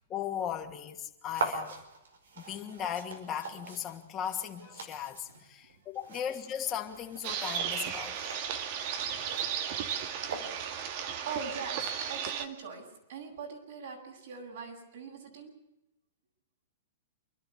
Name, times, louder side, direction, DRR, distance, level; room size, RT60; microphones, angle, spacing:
voice 1, 0.1-1.8 2.4-8.3, left 9 dB, 25° left, 2.6 m, -37 dB
sound 1, 1.3-10.9, right 3 dB, 85° right, 4.9 m, -42 dB
sound 2, 7.2-12.5, right 8 dB, 50° right, 2.1 m, -35 dB
voice 2, 8.9-9.5 11.2-15.5, right 5 dB, 65° right, 7.9 m, -42 dB
28.5 x 12.0 x 8.5 m
hypercardioid pair, 135°, 0 cm